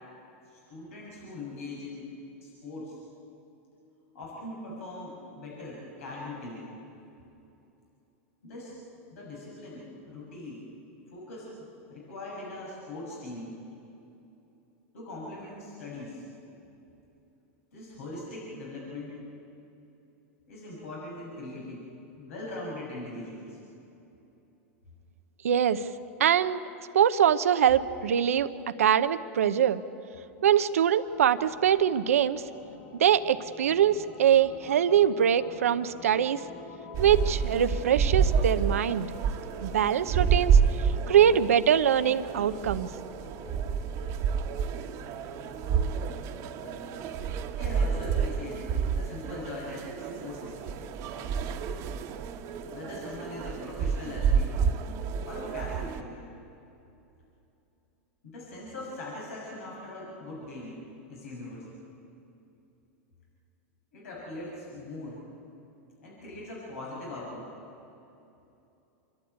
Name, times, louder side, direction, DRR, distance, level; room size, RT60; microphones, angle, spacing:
voice 1, 0.4-2.1 2.4-3.0 4.1-6.7 8.4-8.8 9.1-10.6 11.1-11.5 11.8-13.5 14.9-16.2 17.7-19.2 20.5-21.9 22.2-23.6 46.6-46.8 47.6-50.6 52.7-54.6 55.2-56.2 58.2-60.7 61.1-61.8 63.9-65.2 66.0-67.4, left 2 dB, 80° left, -4 dB, 6.5 m, -41 dB
voice 2, 25.4-25.8 26.2-26.7 26.9-28.5 28.8-29.8 30.4-32.4 33.0-36.4 37.0-39.1 39.6-40.6 41.1-42.9, right 9 dB, 90° right, 11 dB, 0.8 m, -23 dB
sound 1, 31.0-44.2, left 3 dB, 40° left, 6.7 m, -49 dB
sound 2, 36.9-56.0, right 6 dB, 45° right, 1.3 m, -29 dB
27.5 x 12.0 x 9.4 m, 2.9 s
hypercardioid pair, 115°, 8 cm